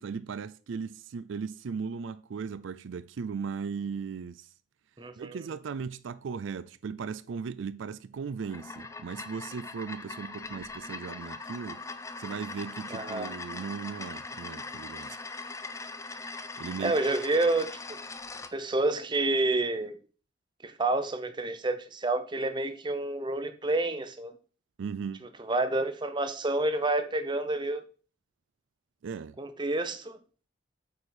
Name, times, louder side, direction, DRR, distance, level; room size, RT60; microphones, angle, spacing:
voice 1, 0.0-4.5 5.2-11.8 12.2-15.2 16.6-17.0 24.8-25.2 29.0-29.4, right 6 dB, 80° right, 0.4 m, -37 dB
voice 2, 5.0-5.4 12.9-13.3 16.8-18.0 18.5-20.0 20.6-24.3 25.5-27.8 29.4-30.2, right 2 dB, 25° right, 0.7 m, -29 dB
sound 1, 8.4-18.5, left 3 dB, 15° left, 0.4 m, -41 dB
8.5 x 4.9 x 4.3 m
head